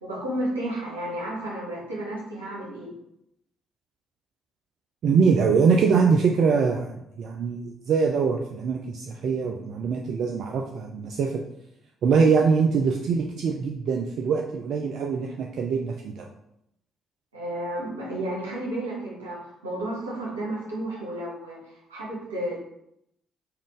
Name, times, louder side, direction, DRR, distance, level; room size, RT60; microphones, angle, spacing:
voice 1, 0.0-2.9 17.3-22.6, right 1 dB, 85° right, -5 dB, 1.0 m, -32 dB
voice 2, 5.0-11.4 12.0-16.2, right 5 dB, 60° right, 1 dB, 0.3 m, -23 dB
3.6 x 2.5 x 3.6 m, 0.79 s
hypercardioid pair, 45°, 0 cm